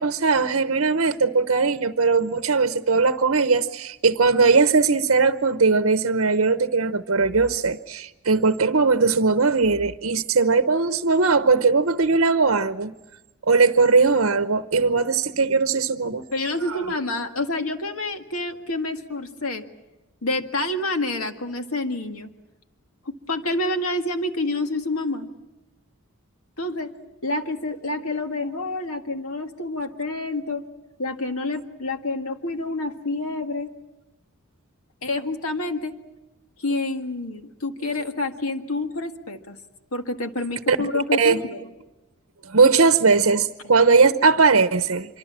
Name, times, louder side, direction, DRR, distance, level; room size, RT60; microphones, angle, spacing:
voice 1, 0.0-12.9 13.5-16.3 16.6-17.0 40.7-40.9 41.2-41.4 42.4-45.2, right 4 dB, 65° right, 0.9 m, -19 dB
voice 2, 16.3-19.6 20.2-22.3 23.1-25.3 26.6-26.9 27.2-30.6 31.0-33.7 35.0-35.9 36.6-39.6 39.9-41.6, left 2 dB, 80° left, 1.9 m, -28 dB
26.0 x 24.0 x 7.5 m
head